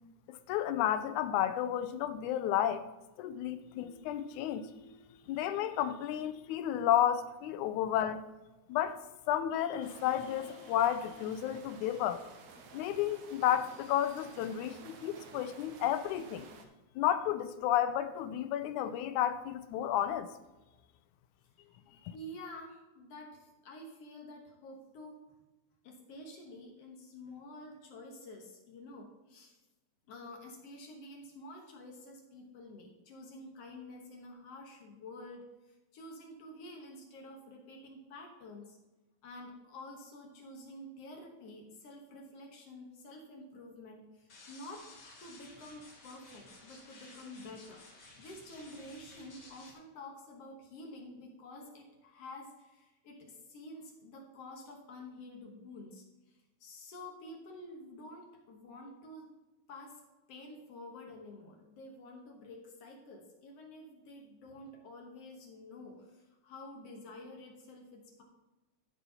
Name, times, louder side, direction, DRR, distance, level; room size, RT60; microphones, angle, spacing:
voice 1, 0.3-2.9 3.2-4.9 5.3-8.2 8.7-9.0 9.3-12.2 12.7-16.5 17.0-20.3 22.1-22.2, left 11 dB, 85° left, 2.0 m, -32 dB
sound 1, 9.8-16.7, right 5 dB, 65° right, 1.8 m, -53 dB
voice 2, 22.1-25.2 25.8-29.6 30.1-38.8 39.2-44.9 45.2-47.8 48.2-59.3 59.7-60.0 60.3-68.2, left 1 dB, 60° left, 2.1 m, -49 dB
sound 2, 44.3-49.7, left 2 dB, 40° left, 2.3 m, -55 dB
12.5 x 4.1 x 5.6 m
omnidirectional pair, 3.4 m